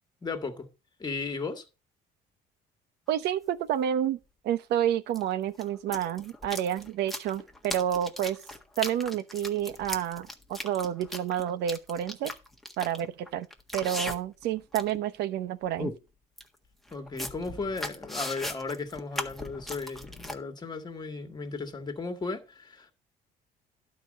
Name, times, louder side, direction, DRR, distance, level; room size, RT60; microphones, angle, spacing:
voice 1, 0.2-0.7 1.0-1.6 16.9-22.9, left 4 dB, 25° left, 1.9 m, -35 dB
sound 1, 3.1-3.2 5.1-5.2 5.5-14.4 14.7-15.0 15.4-15.5 15.8-16.0 16.4-16.5 16.9-20.4, left 1 dB, ahead, 1.5 m, -38 dB
voice 2, 3.1-4.2 4.4-8.4 8.8-12.3 12.8-13.5 13.7-15.9, right 10 dB, 80° right, 0.9 m, -29 dB
11.5 x 4.5 x 6.4 m
cardioid pair, 110°, 17 cm